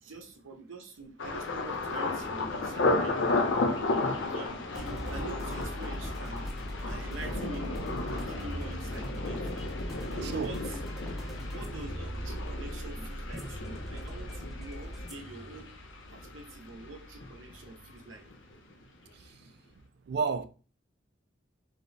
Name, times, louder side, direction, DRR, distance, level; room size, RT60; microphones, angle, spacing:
voice 1, 0.0-3.4 4.2-6.5 6.8-9.7 10.1-10.9 11.4-15.7 16.1-18.3, right 3 dB, 85° right, 0.7 m, -45 dB
Thunder, 1.2-17.0 17.2-17.8 18.3-18.5, left 2 dB, 70° left, 0.6 m, -34 dB
sound 1, 4.7-18.1, equal, ahead, 0.5 m, -40 dB
voice 2, 10.2-10.6 19.1-19.5 20.1-20.5, right 5 dB, 55° right, 0.3 m, -32 dB
3.2 x 2.1 x 3.9 m
head